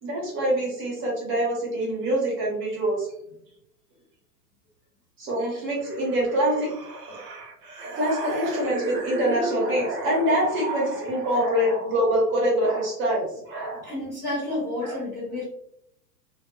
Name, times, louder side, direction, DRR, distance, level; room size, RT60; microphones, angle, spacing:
voice 1, 0.0-3.1 5.2-6.7 8.0-13.9 14.8-15.0, equal, 25° right, -3 dB, 1.0 m, -25 dB
sound 1, 5.8-11.6, right 2 dB, 70° right, 0.8 m, -34 dB
voice 2, 13.8-15.4, left 2 dB, 5° left, -12 dB, 0.5 m, -30 dB
2.9 x 2.3 x 2.2 m, 0.74 s
hypercardioid pair, 125°, 50 cm